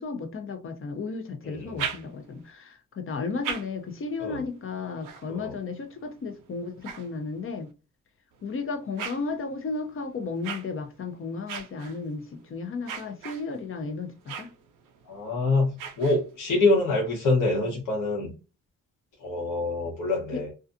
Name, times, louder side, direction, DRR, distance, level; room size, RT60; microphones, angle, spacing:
voice 1, 0.0-7.7 8.4-14.5 20.3-20.4, left 4 dB, 45° left, 0.6 m, -34 dB
voice 2, 1.4-1.8 4.2-4.4 5.3-5.5 15.1-18.3 19.2-20.5, left 2 dB, 70° left, 1.2 m, -26 dB
sound 1, 1.5-2.5 3.1-7.7 8.3-16.6, right 7 dB, 90° right, 0.5 m, -42 dB
2.4 x 2.3 x 2.5 m
cardioid pair, 65°, 31 cm